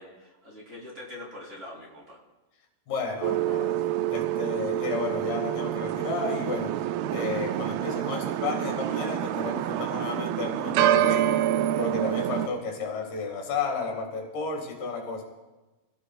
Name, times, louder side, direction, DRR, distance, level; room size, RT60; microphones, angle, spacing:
voice 1, 0.0-2.2, left 1 dB, 20° right, -2 dB, 3.1 m, -43 dB
voice 2, 2.9-3.8 4.1-6.8 7.1-11.3 11.8-15.2, left 4 dB, 90° left, 2 dB, 4.0 m, -32 dB
sound 1, 3.2-12.5, right 12 dB, 80° right, 2.4 m, -27 dB
24.5 x 16.5 x 2.4 m, 1.2 s
omnidirectional pair, 4.3 m